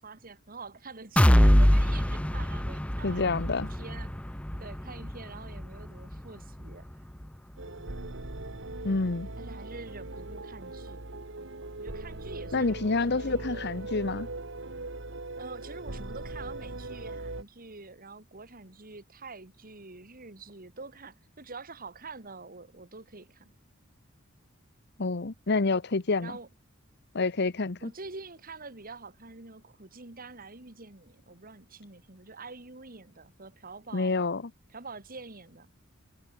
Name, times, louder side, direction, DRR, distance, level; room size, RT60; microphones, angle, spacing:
voice 1, 0.0-3.3 3.5-4.2 4.6-6.9 9.4-11.0 11.8-13.8 15.4-23.5 26.2-26.5 27.8-34.2 34.7-35.7, right 3 dB, 45° right, 2.6 m, -46 dB
sound 1, 1.2-8.9 9.3-9.5 9.9-10.0, equal, 5° left, 0.7 m, -26 dB
voice 2, 3.0-3.7 8.8-9.3 12.5-14.3 25.0-26.3 27.1-27.9 33.9-34.4, left 3 dB, 55° left, 1.0 m, -28 dB
sound 2, 7.6-17.4, right 2 dB, 65° right, 2.2 m, -40 dB
head